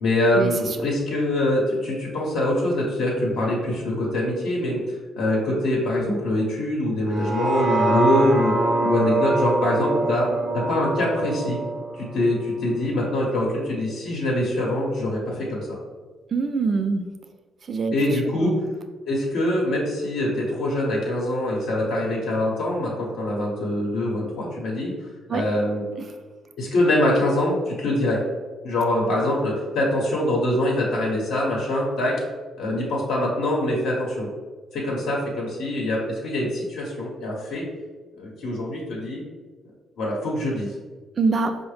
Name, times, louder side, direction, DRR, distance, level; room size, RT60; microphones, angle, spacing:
voice 1, 0.0-4.8 5.2-8.5 8.8-10.3 10.7-11.6 12.0-15.8 17.9-18.5 19.1-24.9 25.3-25.8 26.6-28.2 28.6-32.1 32.6-34.3 34.7-37.6 38.2-39.2 40.0-40.7, left 1 dB, 85° left, -4 dB, 0.7 m, -24 dB
sound 1, 7.1-13.2 13.6-13.7, right 2 dB, 60° right, 0.7 m, -25 dB
voice 2, 16.3-17.1 17.7-18.0 18.3-18.6 25.3-25.4 26.0-26.1 41.2-41.6, right 4 dB, 45° right, 8 dB, 0.4 m, -24 dB
4.6 x 2.0 x 3.2 m, 1.4 s
cardioid pair, 90°, 0 cm